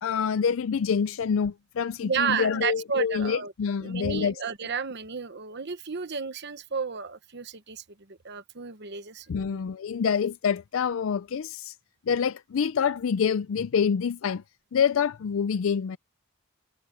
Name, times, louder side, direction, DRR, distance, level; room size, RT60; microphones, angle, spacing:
voice 1, 0.0-4.3 9.3-11.7 12.1-14.4 14.7-16.0, left 6 dB, 65° left, 0.4 m, -26 dB
voice 2, 2.0-3.5 3.8-9.6, right 6 dB, 50° right, 1.1 m, -32 dB
head